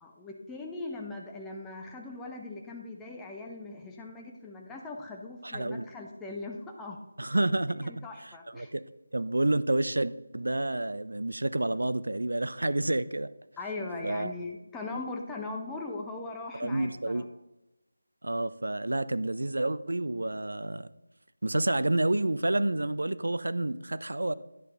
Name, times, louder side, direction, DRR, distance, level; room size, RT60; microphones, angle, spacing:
voice 1, 0.0-7.0 7.8-8.7 13.6-17.2, left 3 dB, 5° left, 0 dB, 0.5 m, -40 dB
voice 2, 5.4-5.9 7.2-8.8 9.1-13.3 14.0-14.3 16.5-17.3 18.2-20.9 21.4-24.3, right 2 dB, 65° right, 16 dB, 0.4 m, -29 dB
10.5 x 5.4 x 3.8 m, 0.96 s
figure-of-eight pair, 160°, 0 cm